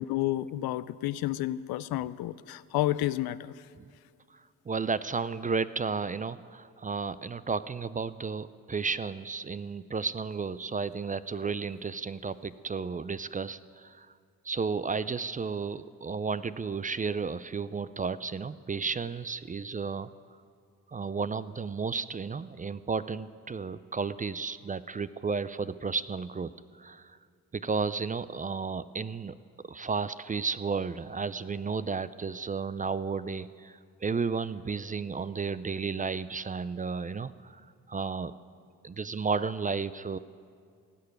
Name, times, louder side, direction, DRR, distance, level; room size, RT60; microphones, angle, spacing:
voice 1, 0.0-3.5, left 15 dB, 75° left, 17 dB, 0.5 m, -30 dB
voice 2, 4.7-14.1 14.4-20.1 20.9-26.5 26.8-27.2 27.5-29.4 29.7-37.6 37.9-38.4 38.8-40.2, right 5 dB, 20° right, 15 dB, 0.4 m, -33 dB
16.5 x 6.6 x 9.4 m, 2.2 s
supercardioid pair, 50°, 37 cm